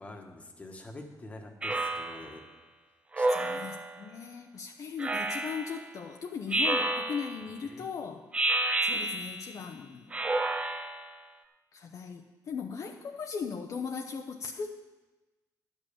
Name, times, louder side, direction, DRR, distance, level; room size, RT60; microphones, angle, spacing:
voice 1, 0.0-2.4 3.2-3.3 7.7-7.9, left 2 dB, 20° left, 3 dB, 1.3 m, -46 dB
Speech synthesizer, 1.6-2.4 3.1-4.0 5.0-5.8 6.5-7.5 8.3-9.5 10.1-11.1, right 2 dB, 20° right, 0.6 m, -30 dB
voice 2, 3.3-8.2 8.8-10.2 11.7-14.7, left 6 dB, 55° left, 3 dB, 0.7 m, -38 dB
11.0 x 5.4 x 8.5 m, 1.2 s
cardioid pair, 140°, 7 cm